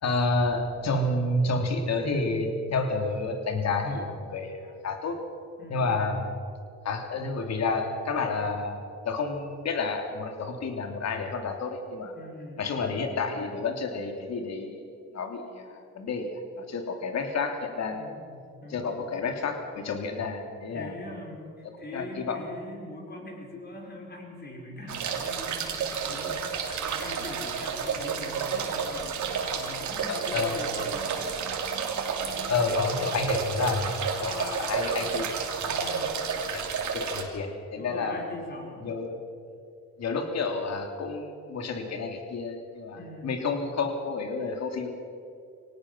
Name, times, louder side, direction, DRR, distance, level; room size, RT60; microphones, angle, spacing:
voice 1, 0.0-5.2 5.7-6.3 6.8-8.8 9.0-12.1 12.6-14.8 15.1-16.4 16.7-18.0 18.7-21.0 21.9-22.4 30.1-30.6 32.5-35.3 35.6-36.0 36.5-36.7 36.9-38.2 38.8-39.2 40.0-44.9, left 3 dB, 60° left, 4 dB, 3.0 m, -30 dB
voice 2, 5.6-6.0 12.1-12.7 17.9-18.9 20.7-26.5 27.0-31.1 35.6-36.2 37.8-38.9 42.9-43.4, left 1 dB, 35° left, 0 dB, 6.2 m, -42 dB
sound 1, 24.9-37.2, right 6 dB, 70° right, 3.1 m, -31 dB
25.0 x 18.5 x 6.2 m, 2.4 s
cardioid pair, 90°, 30 cm